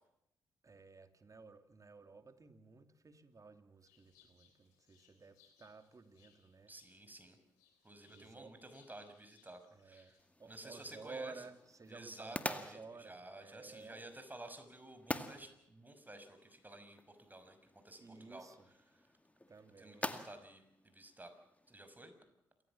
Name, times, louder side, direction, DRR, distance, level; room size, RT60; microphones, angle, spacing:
voice 1, 0.6-6.7 8.1-8.6 9.7-14.0 18.0-18.6 19.5-20.2, right 4 dB, 35° right, 8 dB, 2.8 m, -54 dB
sound 1, 3.8-10.2, left 8 dB, 90° left, 3.8 m, -71 dB
voice 2, 6.7-7.4 7.8-10.2 10.5-11.3 11.9-18.5 18.9-19.0 19.8-21.4 21.7-22.1, right 1 dB, 20° right, 8 dB, 5.8 m, -53 dB
sound 2, 10.2-21.9, left 1 dB, 15° left, 2.1 m, -47 dB
28.0 x 15.5 x 7.4 m, 0.78 s
hypercardioid pair, 45°, 9 cm